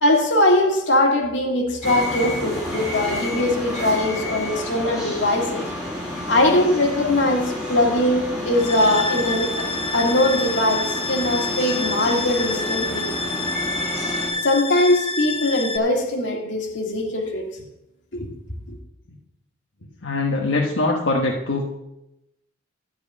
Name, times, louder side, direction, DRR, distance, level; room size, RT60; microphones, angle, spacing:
voice 1, 0.0-5.6 6.3-9.7 9.9-13.1 14.4-17.5 18.1-18.3, left 1 dB, 65° left, 2.0 m, -21 dB
sound 1, 1.8-14.3, left 1 dB, ahead, 4.0 m, -30 dB
sound 2, 8.6-15.8, left 3 dB, 30° left, 0.6 m, -28 dB
voice 2, 20.0-21.6, left 2 dB, 85° left, 1.3 m, -22 dB
12.5 x 4.7 x 8.4 m
head